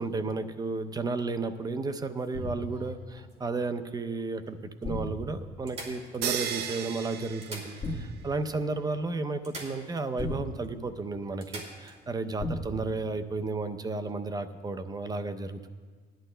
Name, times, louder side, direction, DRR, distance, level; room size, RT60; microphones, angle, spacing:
voice 1, 0.0-15.7, right 3 dB, 25° right, 10 dB, 0.6 m, -33 dB
sound 1, 2.2-3.8 4.5-4.6 4.8-4.9 5.7-6.7 7.3-8.3 8.5-8.6 9.4-10.3 10.6-10.7 11.4-12.0 14.0-14.1, right 2 dB, 40° right, 2.3 m, -46 dB
sound 2, 2.3-2.9 4.8-5.6 7.8-8.4 10.2-11.0 12.4-13.0, left 1 dB, 30° left, 1.5 m, -35 dB
sound 3, 6.2-8.4, right 8 dB, 70° right, 0.7 m, -35 dB
19.0 x 11.5 x 2.2 m, 1.5 s
cardioid pair, 110°, 17 cm